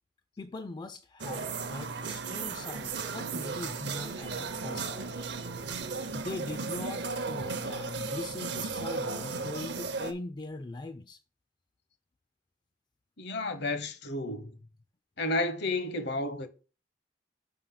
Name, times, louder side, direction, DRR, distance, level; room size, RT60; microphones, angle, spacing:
voice 1, 0.4-5.1 6.1-11.2, left 2 dB, 25° left, 0.3 m, -41 dB
sound 1, 1.2-10.1, right 4 dB, 65° right, 0.7 m, -35 dB
voice 2, 13.2-14.6 15.2-16.5, left 2 dB, 60° left, 0.8 m, -31 dB
5.2 x 3.8 x 5.8 m
head